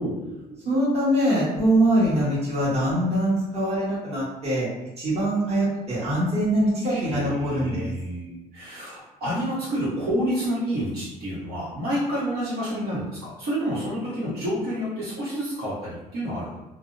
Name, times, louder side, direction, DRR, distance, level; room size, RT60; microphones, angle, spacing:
voice 1, 0.0-0.6 6.9-16.6, equal, 65° right, -9 dB, 1.0 m, -29 dB
voice 2, 0.6-4.7 5.0-7.9, right 1 dB, 40° right, -8 dB, 1.3 m, -23 dB
2.5 x 2.0 x 2.5 m, 0.98 s
cardioid pair, 110°, 17 cm